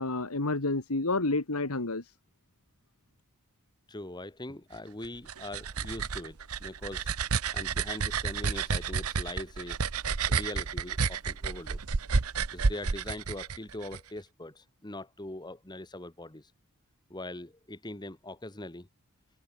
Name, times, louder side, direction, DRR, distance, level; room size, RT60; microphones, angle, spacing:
voice 1, 0.0-2.0, left 2 dB, 90° left, 2.0 m, -29 dB
voice 2, 3.9-7.2 7.5-9.8 10.3-11.8 12.5-16.5 17.1-18.9, left 1 dB, 20° left, 1.6 m, -42 dB
sound 1, 5.0-14.0, right 5 dB, 90° right, 1.0 m, -31 dB
head